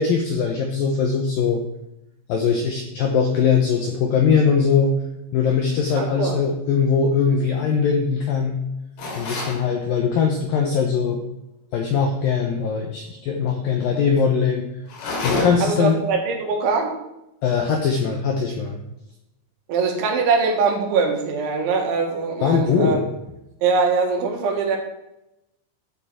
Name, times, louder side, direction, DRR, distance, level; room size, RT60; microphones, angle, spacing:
voice 1, 0.0-1.6 2.3-4.9 5.3-8.6 9.2-11.2 11.7-14.7 15.2-16.0 17.4-18.8 22.4-23.0, left 6 dB, 80° left, 3 dB, 2.0 m, -21 dB
voice 2, 6.0-6.4 15.6-16.9 19.7-23.0 23.6-24.8, right 4 dB, 80° right, 2 dB, 4.0 m, -22 dB
sound 1, 9.0-9.6 14.9-15.8, left 2 dB, 65° left, 4.5 m, -27 dB
12.0 x 7.3 x 4.9 m, 0.90 s
omnidirectional pair, 5.4 m